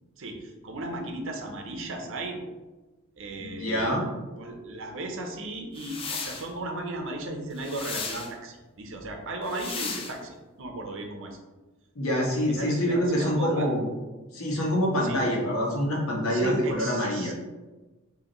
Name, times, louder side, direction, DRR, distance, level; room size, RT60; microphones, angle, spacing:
voice 1, 0.2-2.4 3.2-4.1 4.4-11.4 12.6-13.7 15.0-15.2 16.3-17.3, right 2 dB, 65° right, 3 dB, 0.7 m, -35 dB
voice 2, 3.4-4.1 11.9-13.9 14.3-17.3, equal, 80° left, -2 dB, 1.1 m, -26 dB
sound 1, 5.7-6.5 7.6-8.3 9.4-10.2, left 5 dB, 25° left, 0.5 m, -35 dB
5.0 x 2.8 x 3.0 m, 1.2 s
head